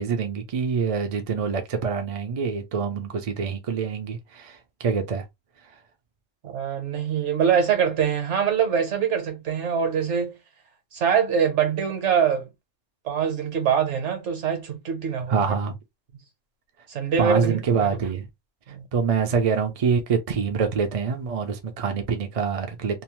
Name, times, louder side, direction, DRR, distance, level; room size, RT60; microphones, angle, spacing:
voice 1, 0.0-5.2 15.3-15.8 17.2-18.3 18.9-23.0, right 6 dB, 50° right, 0.4 m, -25 dB
voice 2, 6.4-10.4 10.9-12.5 13.0-15.5 16.9-17.9 18.7-18.9, right 7 dB, 65° right, 1.2 m, -24 dB
2.7 x 2.0 x 2.9 m
omnidirectional pair, 1.3 m